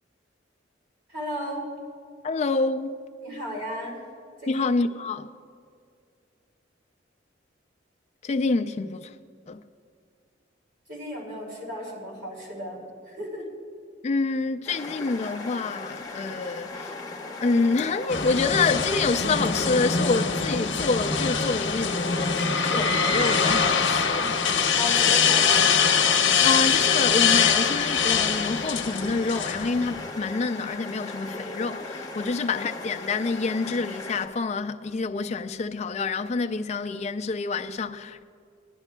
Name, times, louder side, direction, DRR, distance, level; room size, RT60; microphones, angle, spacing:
voice 1, 1.1-1.7 3.2-4.0 4.4-4.6 10.9-13.5 24.8-25.7 32.1-32.3, left 1 dB, 60° right, 3.0 m, -35 dB
voice 2, 2.2-2.9 4.5-5.3 8.2-9.1 9.5-9.6 14.0-16.9 17.4-24.4 26.1-38.2, left 4 dB, 35° left, 0.4 m, -27 dB
sound 1, 14.7-34.3, left 3 dB, 20° left, 0.8 m, -37 dB
sound 2, 18.1-30.1, left 6 dB, 85° left, 0.8 m, -23 dB
20.5 x 10.5 x 2.2 m
head